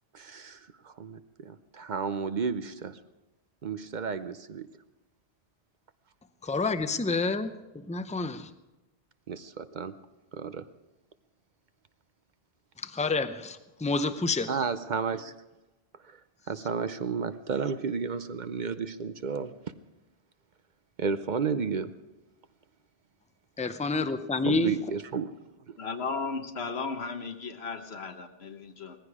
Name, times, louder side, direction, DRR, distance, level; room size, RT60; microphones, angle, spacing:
voice 1, 0.1-3.0 3.6-4.7 9.3-9.9 10.3-10.7 14.5-15.3 16.0-16.2 16.5-19.6 21.0-22.0 24.5-25.3 25.7-25.8, right 5 dB, 50° right, 12 dB, 0.7 m, -32 dB
voice 2, 6.4-8.5 12.8-14.5 23.6-24.7, left 3 dB, 10° left, 10 dB, 0.5 m, -29 dB
voice 3, 25.8-29.0, left 4 dB, 85° left, 7 dB, 1.5 m, -35 dB
18.5 x 15.0 x 4.9 m, 1.0 s
omnidirectional pair, 1.0 m